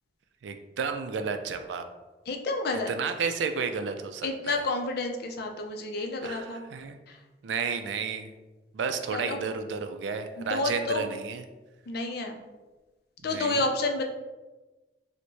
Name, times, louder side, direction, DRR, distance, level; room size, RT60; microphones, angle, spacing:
voice 1, 0.4-1.8 2.9-4.6 6.2-7.0 7.4-8.3 8.7-11.4 13.2-13.6, right 5 dB, 80° right, 7 dB, 0.3 m, -32 dB
voice 2, 2.3-2.9 4.2-6.6 7.1-7.2 9.1-9.4 10.4-11.1 11.9-12.4 13.2-14.0, left 2 dB, 60° left, 3 dB, 0.4 m, -30 dB
4.4 x 2.1 x 2.6 m, 1.2 s
head